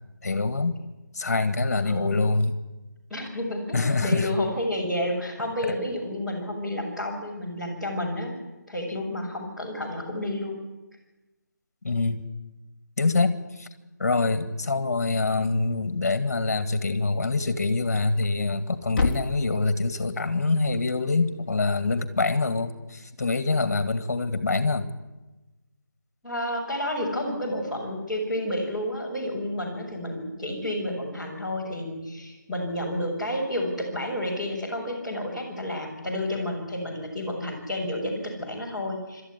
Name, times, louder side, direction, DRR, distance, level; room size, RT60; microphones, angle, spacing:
voice 1, 0.2-0.8 1.1-2.5 3.7-4.3 11.8-12.3 13.0-13.7 14.0-24.9, left 3 dB, 55° left, 11 dB, 2.1 m, -25 dB
voice 2, 1.8-2.2 3.1-8.4 8.7-10.6 26.2-39.2, left 1 dB, ahead, -10 dB, 5.4 m, -30 dB
Thump thud, 18.0-22.1, left 4 dB, 35° left, 1.6 m, -34 dB
26.0 x 13.0 x 9.8 m, 1.1 s
figure-of-eight pair, 160°, 10 cm